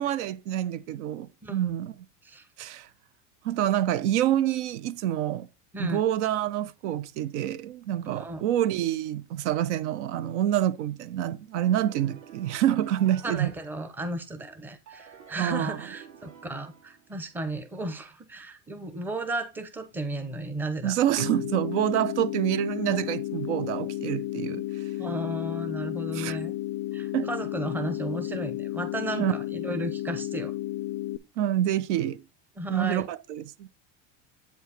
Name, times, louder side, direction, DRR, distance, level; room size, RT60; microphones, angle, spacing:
voice 1, 0.0-1.9 2.6-2.9 3.4-5.5 5.8-13.5 15.4-15.8 20.8-24.6 26.1-26.4 27.1-27.3 29.2-29.3 31.4-32.2 32.7-33.7, right 11 dB, 75° right, 0.8 m, -27 dB
voice 2, 8.1-8.4 13.2-21.0 25.0-26.5 26.9-30.5 32.6-33.0, right 1 dB, 5° right, 0.7 m, -34 dB
sound 1, 11.6-14.2 14.9-17.3, right 8 dB, 55° right, 2.5 m, -50 dB
sound 2, 21.2-31.2, left 14 dB, 45° left, 0.4 m, -33 dB
8.3 x 4.6 x 4.0 m
supercardioid pair, 160°, 36 cm